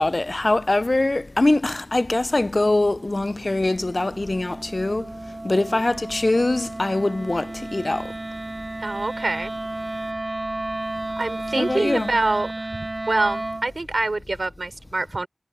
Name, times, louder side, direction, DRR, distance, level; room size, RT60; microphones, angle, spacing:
voice 1, 0.0-5.1 5.4-8.1 11.6-12.2, left 2 dB, 50° left, 0.5 m, -23 dB
Wind instrument woodwind instrument, 2.2-13.7, right 2 dB, 45° right, 3.5 m, -33 dB
voice 2, 8.8-9.5 11.2-15.3, right 2 dB, 75° right, 3.5 m, -26 dB
wide cardioid pair, 45°, 0 cm